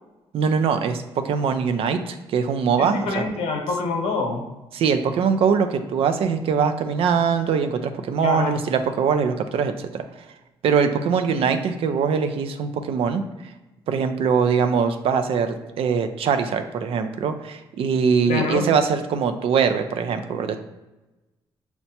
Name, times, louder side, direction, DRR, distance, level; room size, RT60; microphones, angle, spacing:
voice 1, 0.3-3.3 4.7-10.0 10.6-13.2 13.9-20.6, right 6 dB, 70° right, 8 dB, 0.4 m, -22 dB
voice 2, 2.8-4.4 8.2-8.6 18.2-18.6, left 4 dB, 85° left, 2 dB, 0.8 m, -26 dB
5.6 x 2.1 x 2.8 m, 1.1 s
cardioid pair, 75°, 10 cm